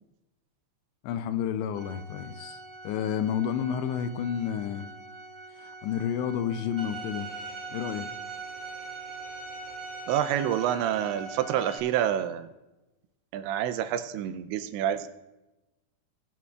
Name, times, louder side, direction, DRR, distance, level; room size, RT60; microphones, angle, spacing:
voice 1, 1.0-4.9 5.6-7.3 7.7-8.1, left 9 dB, 80° left, 10 dB, 2.7 m, -30 dB
Organ, 1.7-12.3, right 3 dB, 65° right, 2.0 m, -47 dB
Bowed string instrument, 6.8-11.8, right 3 dB, 15° right, 4.3 m, -40 dB
voice 2, 10.1-12.5 13.3-15.1, right 10 dB, 85° right, 11 dB, 2.8 m, -28 dB
20.5 x 11.0 x 2.3 m, 1.0 s
omnidirectional pair, 5.3 m